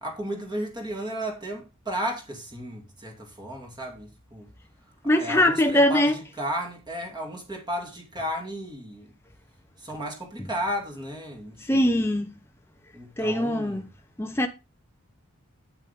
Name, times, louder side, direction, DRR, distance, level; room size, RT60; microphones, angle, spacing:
voice 1, 0.0-4.5 5.0-9.1 9.8-11.9 12.9-13.8, equal, 20° right, 2.6 m, -34 dB
voice 2, 5.0-6.2 11.7-12.3 13.2-13.9 14.2-14.5, left 1 dB, 10° left, 0.8 m, -22 dB
8.9 x 8.4 x 3.6 m
head